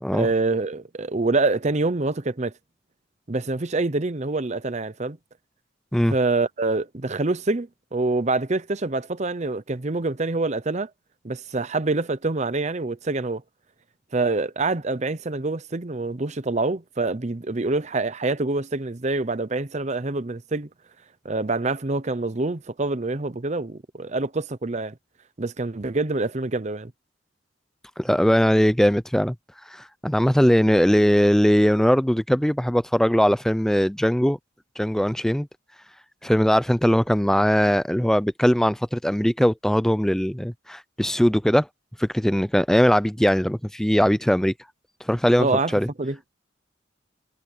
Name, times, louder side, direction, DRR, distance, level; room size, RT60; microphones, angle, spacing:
voice 1, 0.1-2.5 3.3-5.2 6.1-10.9 11.2-13.4 14.1-20.7 21.2-25.0 25.4-26.9 45.4-46.2, right 3 dB, 35° right, 0.8 m, -26 dB
voice 2, 28.0-29.3 29.7-34.4 34.8-35.5 36.2-41.7 42.0-44.5 45.1-45.5 45.7-45.9, equal, 5° left, 0.5 m, -20 dB
head